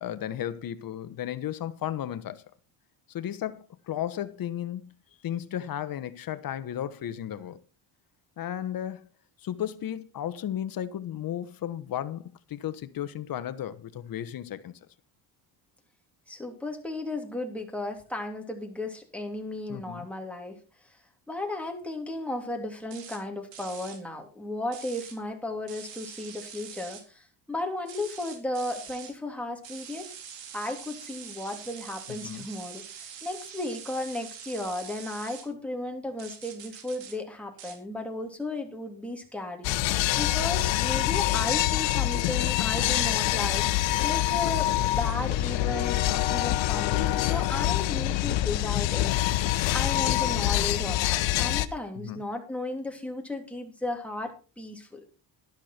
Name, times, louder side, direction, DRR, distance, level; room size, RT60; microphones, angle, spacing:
voice 1, 0.0-2.4 3.1-4.9 5.2-7.6 8.4-9.1 9.4-14.8 19.7-20.1 32.2-32.5 51.9-52.3, left 11 dB, 50° left, 1.2 m, -34 dB
voice 2, 16.3-21.0 21.3-30.1 30.5-39.7 40.2-49.2 49.7-55.0, left 2 dB, 5° left, 3.1 m, -35 dB
sound 1, 22.9-23.2 23.5-24.0 24.7-25.2 25.7-27.0 27.9-29.1 29.6-35.5 36.2-37.2 37.6-37.8, right 8 dB, 80° right, 3.8 m, -44 dB
sound 2, 39.6-51.7, left 15 dB, 85° left, 1.0 m, -25 dB
12.0 x 11.5 x 4.5 m
cardioid pair, 125°, 44 cm